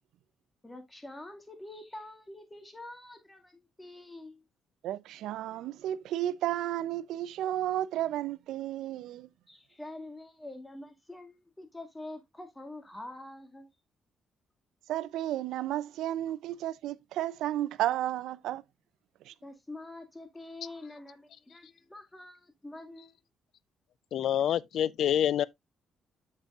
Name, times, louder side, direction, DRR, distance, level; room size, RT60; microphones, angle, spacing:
voice 1, 0.6-4.4 9.5-13.7 19.4-23.1, left 2 dB, 15° left, 2.1 m, -46 dB
voice 2, 4.8-9.3 14.9-18.6 19.2-19.3, right 13 dB, 85° right, 0.5 m, -32 dB
voice 3, 24.1-25.4, left 10 dB, 70° left, 0.4 m, -26 dB
8.1 x 6.8 x 2.4 m
cardioid pair, 90°, 0 cm